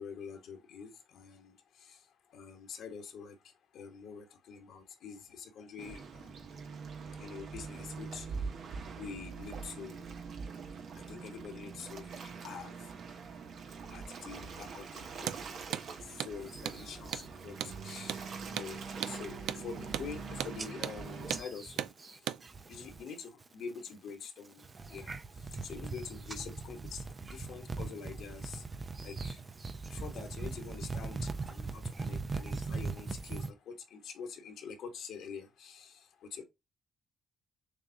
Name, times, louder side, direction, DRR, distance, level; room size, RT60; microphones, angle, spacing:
voice 1, 0.0-1.5 1.9-2.0 2.3-3.3 3.7-6.3 7.2-8.2 9.0-10.0 11.1-12.8 13.9-15.5 16.2-17.5 17.8-18.2 18.5-21.8 22.7-24.6 24.9-25.2 25.6-28.6 29.0-29.4 29.8-31.2 31.4-35.9 36.3-36.4, left 6 dB, 75° left, 1.3 m, -46 dB
Waves surf, 5.8-21.4, right 5 dB, 60° right, 1.0 m, -44 dB
Hammer, 15.2-15.4 15.7-15.9 16.2-16.3 16.7-16.8 17.1-17.3 17.6-17.8 18.1-18.2 18.6-18.7 19.0-19.2 19.5-19.6 19.9-20.1 20.4-20.6 20.8-21.0 21.3-21.5 21.8-21.9 22.3-22.4, right 11 dB, 85° right, 0.3 m, -36 dB
sound 1, 16.5-17.3 17.7-18.1 18.4-18.8 19.3-19.4 19.6-20.2 20.6-23.1 23.4-23.9 24.4-33.5, right 3 dB, 30° right, 0.6 m, -41 dB
6.6 x 2.4 x 2.7 m
cardioid pair, 90°, 0 cm